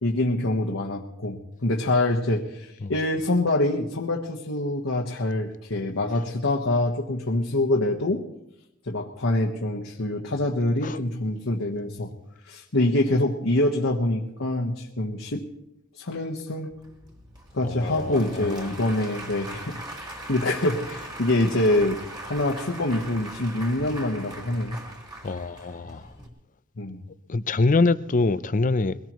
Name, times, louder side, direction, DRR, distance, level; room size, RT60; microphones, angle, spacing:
voice 1, 0.0-8.2 8.9-12.1 12.5-15.5 16.0-16.7 17.5-24.8 26.8-27.0, left 1 dB, 70° left, 1.3 m, -25 dB
Applause / Crowd, 16.7-26.3, right 1 dB, 20° right, 3.2 m, -40 dB
voice 2, 17.6-18.8 25.2-26.1 27.3-29.0, left 3 dB, 40° left, 0.6 m, -25 dB
23.0 x 18.0 x 3.1 m
head